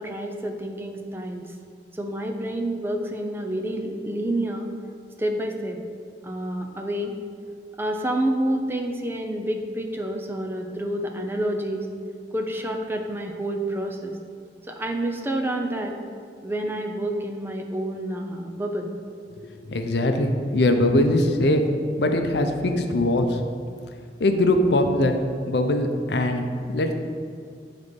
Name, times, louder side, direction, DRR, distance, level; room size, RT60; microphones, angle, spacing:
voice 1, 0.0-1.5 1.9-4.7 5.2-5.8 6.2-7.1 7.8-11.9 12.3-14.2 14.7-16.0 16.4-18.9, right 1 dB, 15° right, 2 dB, 0.5 m, -28 dB
voice 2, 19.4-21.7 22.0-23.4 24.2-25.2 25.5-26.4 26.7-26.9, left 1 dB, 70° left, 5 dB, 0.6 m, -21 dB
8.2 x 4.0 x 5.2 m, 2.2 s
head